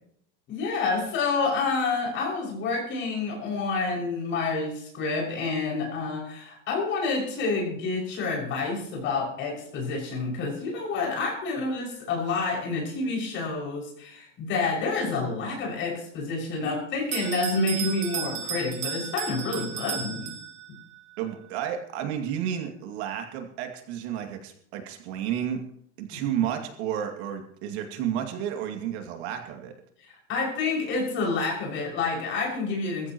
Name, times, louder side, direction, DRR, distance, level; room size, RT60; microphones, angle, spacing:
voice 1, 0.5-20.3 30.0-33.1, left 3 dB, 35° left, -1 dB, 6.4 m, -28 dB
Bell, 17.1-20.8, right 9 dB, 85° right, 2.3 m, -34 dB
voice 2, 21.2-25.6 26.0-29.7, right 9 dB, 65° right, 4 dB, 2.4 m, -31 dB
22.0 x 14.5 x 3.1 m, 0.70 s
supercardioid pair, 170°, 35 cm